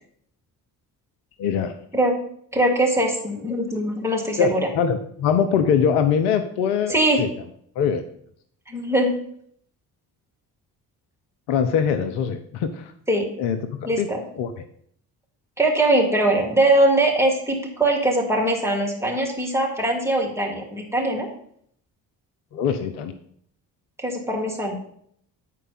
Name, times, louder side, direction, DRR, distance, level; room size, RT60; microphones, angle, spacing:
voice 1, 1.4-1.7 4.4-7.3 7.8-8.0 11.5-12.9 13.4-14.1 14.4-14.5 22.5-23.1, left 7 dB, 65° left, 8 dB, 0.7 m, -22 dB
voice 2, 2.5-4.7 6.9-7.2 8.7-9.2 13.1-13.3 13.9-14.2 15.6-21.3 24.0-24.7, right 1 dB, 5° right, -1 dB, 2.1 m, -21 dB
8.3 x 4.5 x 5.5 m, 0.65 s
figure-of-eight pair, 45°, 50 cm